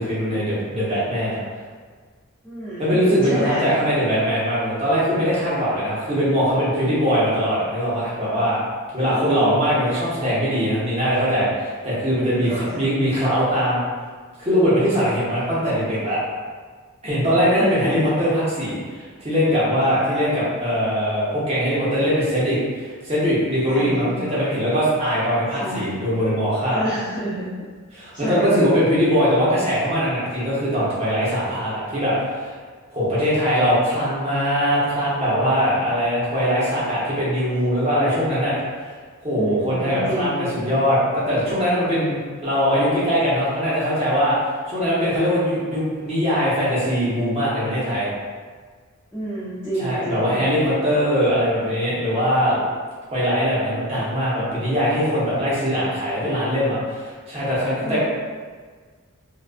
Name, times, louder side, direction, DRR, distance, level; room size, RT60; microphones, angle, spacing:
voice 1, 0.0-1.4 2.8-8.6 8.9-13.8 14.4-16.2 17.0-26.8 28.0-32.5 32.9-38.6 39.2-44.4 44.7-48.1 49.8-52.6 53.1-58.0, equal, 30° right, -9 dB, 0.8 m, -21 dB
voice 2, 2.4-3.7 9.0-9.5 12.2-12.8 17.4-17.9 19.8-20.2 23.7-24.2 25.6-26.0 26.7-27.5 28.1-28.6 39.3-40.5 49.1-50.4 57.8-58.0, right 1 dB, 10° left, -10 dB, 0.4 m, -30 dB
2.4 x 2.3 x 2.3 m, 1.6 s
head